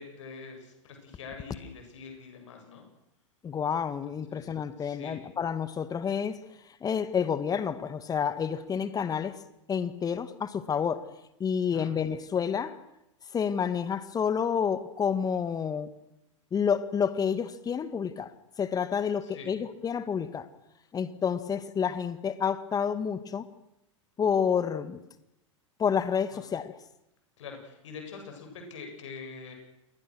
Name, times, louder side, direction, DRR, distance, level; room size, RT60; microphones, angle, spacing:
voice 1, 0.0-2.8 4.3-4.5 4.8-5.2 11.7-11.9 19.2-19.5 27.4-29.5, left 5 dB, 70° left, 7.5 m, -44 dB
voice 2, 3.4-6.4 6.8-9.4 9.7-11.0 11.4-12.8 13.3-15.9 16.5-18.3 18.6-20.5 20.9-23.5 24.2-25.0 25.8-26.7, left 7 dB, 25° left, 2.0 m, -29 dB
28.5 x 21.5 x 6.5 m
hypercardioid pair, 95°, 16 cm